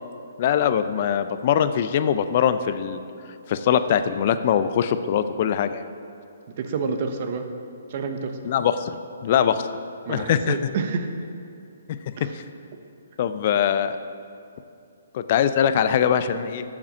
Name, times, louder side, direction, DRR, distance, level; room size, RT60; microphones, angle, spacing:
voice 1, 0.4-3.0 3.5-5.8 8.4-8.9 9.2-9.7 10.1-10.7 12.2-12.4 13.2-14.0 15.1-16.6, left 9 dB, 45° left, 11 dB, 0.6 m, -22 dB
voice 2, 6.6-7.4 7.9-8.4 10.1-11.1 12.2-12.3, right 5 dB, 45° right, 6 dB, 1.1 m, -28 dB
9.1 x 7.4 x 7.2 m, 2.5 s
figure-of-eight pair, 135°, 0 cm